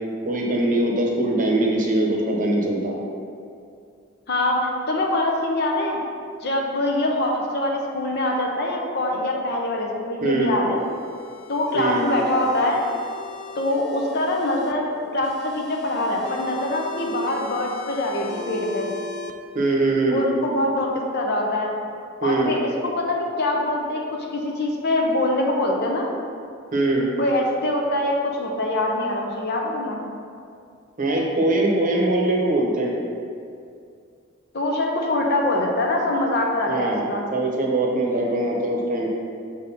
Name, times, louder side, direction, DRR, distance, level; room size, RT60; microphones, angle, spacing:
voice 1, 0.2-3.0 10.2-10.5 11.7-12.1 19.5-20.2 22.2-22.5 26.7-27.1 31.0-32.9 36.7-39.1, right 2 dB, 40° right, -1 dB, 0.9 m, -22 dB
voice 2, 4.3-6.0 6.4-10.8 11.5-12.8 13.6-18.9 20.1-21.7 22.2-26.1 27.2-30.0 34.5-37.2, left 1 dB, 55° left, 0 dB, 0.8 m, -24 dB
sound 1, 10.8-14.7 15.2-19.3, left 4 dB, 80° left, 0.5 m, -38 dB
6.4 x 4.0 x 4.1 m, 2.4 s
head